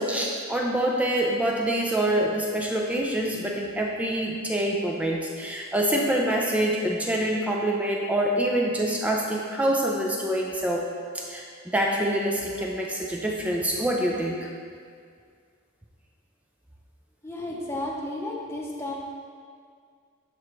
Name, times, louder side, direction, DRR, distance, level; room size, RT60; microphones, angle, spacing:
voice 1, 0.0-10.8 11.1-11.4 11.7-14.5, right 1 dB, 5° right, -1 dB, 0.5 m, -26 dB
voice 2, 17.2-18.9, left 1 dB, 10° left, -3 dB, 0.9 m, -33 dB
11.5 x 4.7 x 3.1 m, 2.1 s
head